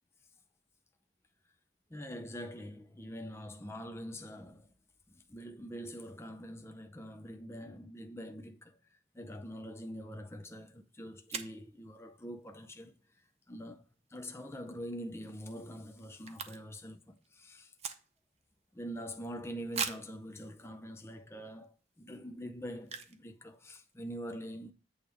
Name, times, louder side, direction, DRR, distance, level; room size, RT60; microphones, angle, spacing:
voice 1, 1.9-4.7 5.1-17.7 18.7-24.7, equal, 15° left, 0.6 m, -45 dB
sound 1, 10.6-10.7 11.3-11.6 14.6-14.8 15.2-15.3 15.4-16.9 17.2-18.4 18.9-19.0 19.7-20.2 20.9-21.0 21.5-21.6 22.8-23.3 23.5-23.6 23.8-24.1, right 6 dB, 35° right, 0.8 m, -40 dB
8.7 x 3.4 x 6.2 m
head